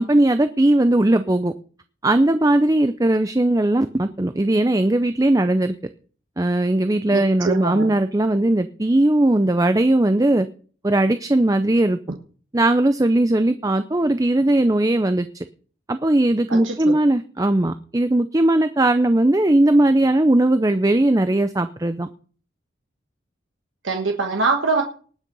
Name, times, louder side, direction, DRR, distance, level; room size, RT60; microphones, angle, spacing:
voice 1, 0.0-1.5 2.0-5.7 6.4-10.5 10.8-12.0 12.5-15.4 15.9-22.1, right 1 dB, 20° right, 10 dB, 0.5 m, -18 dB
voice 2, 7.1-7.9 16.5-17.0 23.8-24.8, right 4 dB, 85° right, 2 dB, 1.5 m, -23 dB
19.0 x 6.5 x 5.4 m, 0.42 s
head